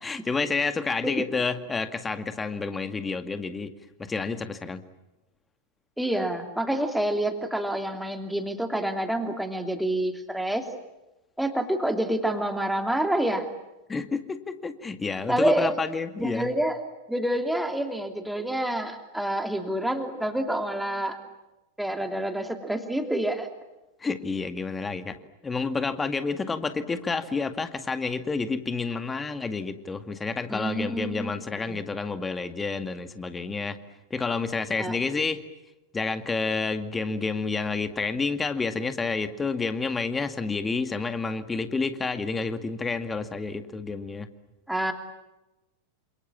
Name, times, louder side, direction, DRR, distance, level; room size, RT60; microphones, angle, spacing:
voice 1, 0.0-3.7 4.0-4.8 13.9-16.5 24.0-33.8 34.1-35.4 35.9-44.3, left 4 dB, 15° left, 10 dB, 2.1 m, -29 dB
voice 2, 6.0-10.6 11.4-13.4 15.3-15.8 16.2-16.8 17.1-21.2 21.8-23.5 30.5-31.3 31.7-31.8 34.8-35.0 44.7-44.9, right 1 dB, ahead, 6 dB, 3.0 m, -27 dB
28.5 x 27.5 x 7.4 m, 0.99 s
figure-of-eight pair, 90°, 0 cm